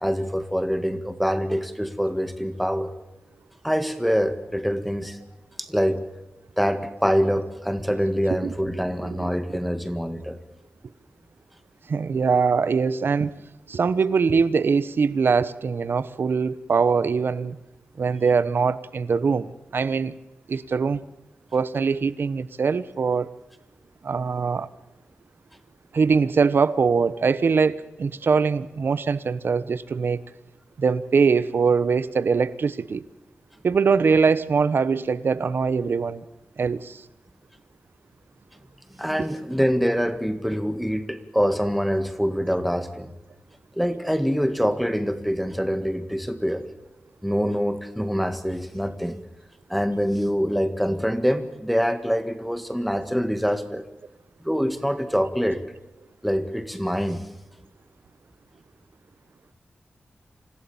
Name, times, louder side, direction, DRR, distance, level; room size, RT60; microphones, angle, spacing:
voice 1, 0.0-2.9 3.6-5.2 5.6-6.0 6.6-10.4 39.0-43.1 43.8-46.6 47.2-49.2 49.7-53.8 54.4-55.6 56.2-57.2, equal, ahead, 9 dB, 1.8 m, -25 dB
voice 2, 11.9-13.3 13.7-17.6 18.0-20.1 20.5-21.0 21.5-23.3 24.0-24.7 25.9-30.2 30.8-33.1 33.6-36.2 36.6-37.0 39.2-39.3, right 5 dB, 65° right, 17 dB, 1.0 m, -22 dB
26.5 x 16.0 x 7.1 m, 0.99 s
wide cardioid pair, 150°, 4 cm